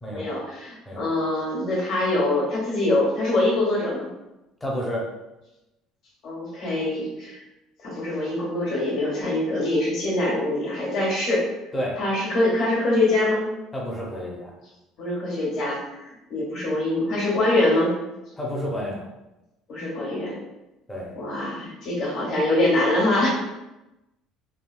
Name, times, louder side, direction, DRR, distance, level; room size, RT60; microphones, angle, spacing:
voice 1, 0.1-4.1 6.2-7.4 7.8-11.4 12.0-13.5 15.0-17.9 19.7-20.4 21.1-23.3, left 2 dB, 50° left, -6 dB, 1.3 m, -24 dB
voice 2, 4.6-5.1 11.7-12.0 13.7-14.5 18.4-19.0 20.9-21.1, equal, 10° left, -3 dB, 0.6 m, -30 dB
3.4 x 2.3 x 2.2 m, 0.96 s
cardioid pair, 165°, 0 cm